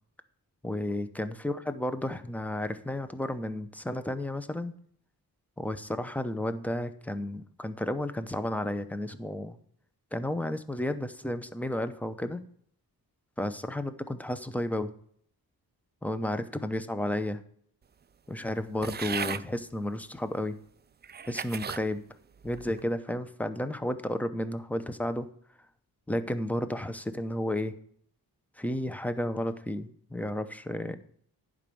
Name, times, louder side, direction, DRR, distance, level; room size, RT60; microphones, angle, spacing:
voice 1, 0.6-4.7 5.6-9.6 10.1-12.4 13.4-14.9 16.0-17.4 18.3-20.6 21.3-22.0 22.4-25.3 26.1-27.7 28.6-31.0, left 1 dB, 5° left, 11 dB, 0.7 m, -32 dB
sound 1, 18.8-19.5 20.3-20.4 21.0-21.9 22.4-22.8, right 6 dB, 30° right, 0.3 m, -36 dB
10.5 x 5.2 x 6.9 m, 0.62 s
wide cardioid pair, 90°, 38 cm